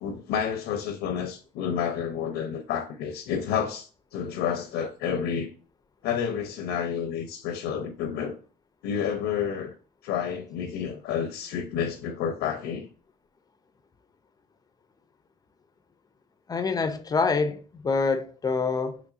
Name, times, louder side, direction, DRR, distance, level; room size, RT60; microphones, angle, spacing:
voice 1, 0.0-5.5 6.0-8.4 8.8-9.7 10.0-12.9, left 8 dB, 90° left, 0.5 m, -30 dB
voice 2, 16.5-19.0, left 4 dB, 25° left, 0.4 m, -26 dB
3.9 x 3.0 x 2.4 m
cardioid pair, 110°, 17 cm